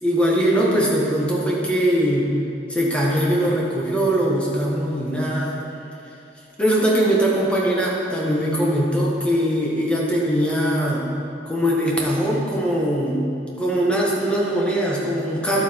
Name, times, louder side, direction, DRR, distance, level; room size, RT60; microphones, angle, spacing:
voice 1, 0.0-2.3 2.7-5.6 6.6-11.0 11.4-13.2 13.6-15.6, equal, 5° left, -4 dB, 1.5 m, -21 dB
11.0 x 8.2 x 4.7 m, 2.8 s
head